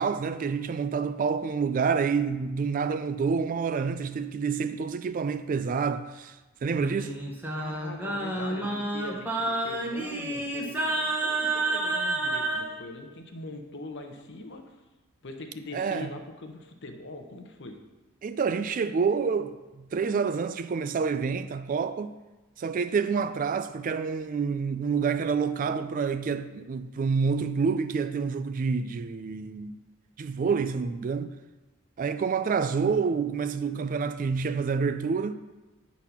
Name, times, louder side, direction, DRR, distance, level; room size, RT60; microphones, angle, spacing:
voice 1, 0.0-7.2 15.7-16.1 18.2-22.2 22.6-29.8 30.2-31.3 32.0-35.3, right 5 dB, 40° right, 0.3 m, -28 dB
Singing, 6.6-12.7, right 2 dB, 10° right, 0.9 m, -30 dB
voice 2, 7.5-14.8 15.2-17.8, left 2 dB, 55° left, 0.8 m, -42 dB
8.2 x 4.1 x 5.8 m
head